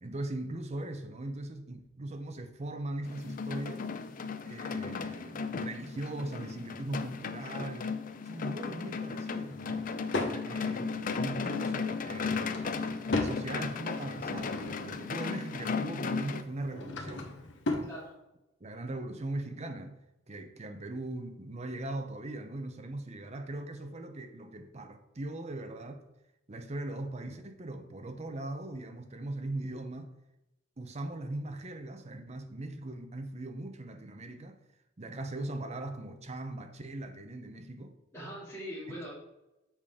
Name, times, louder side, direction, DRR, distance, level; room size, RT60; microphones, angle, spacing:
voice 1, 0.0-3.9 4.4-9.9 10.2-17.4 17.7-17.9 18.6-20.0 20.3-26.0 26.5-30.1 30.8-34.6 35.0-38.0 38.9-39.1, right 2 dB, 35° right, 0.7 m, -40 dB
sound 1, 3.0-16.4, left 5 dB, 45° left, 0.4 m, -35 dB
Drawer open or close / Wood, 9.4-10.4 12.1-13.4 13.9-15.1 16.4-17.9, left 2 dB, 65° left, 0.9 m, -37 dB
voice 2, 17.8-18.1 38.1-39.1, equal, 15° left, 2.6 m, -41 dB
7.3 x 5.1 x 3.5 m
head